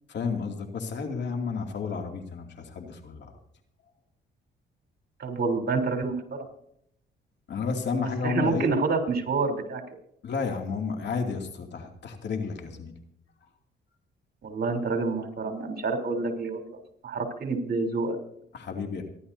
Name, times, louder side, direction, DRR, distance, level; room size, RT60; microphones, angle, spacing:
voice 1, 0.1-3.3 7.5-8.7 10.2-12.9 18.5-19.0, left 5 dB, 65° left, 3 dB, 2.6 m, -31 dB
voice 2, 5.2-6.4 8.2-9.8 14.4-16.8 17.0-18.2, right 4 dB, 55° right, 3 dB, 3.6 m, -28 dB
28.5 x 11.5 x 2.8 m, 0.74 s
cardioid pair, 90°, 20 cm